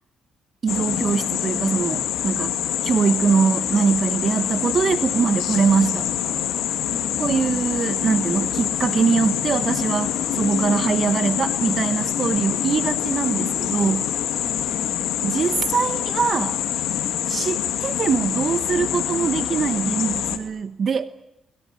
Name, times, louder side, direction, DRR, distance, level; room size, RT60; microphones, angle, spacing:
voice 1, 0.6-6.3 7.2-14.1 15.2-16.6 17.3-21.1, right 6 dB, 45° right, 11 dB, 1.1 m, -23 dB
sound 1, 0.7-20.4, left 11 dB, 85° left, 2.4 m, -25 dB
voice 2, 6.8-7.6 14.4-15.0, left 1 dB, 5° left, 5 dB, 3.7 m, -39 dB
28.0 x 21.0 x 9.7 m, 0.90 s
cardioid pair, 90°, 0 cm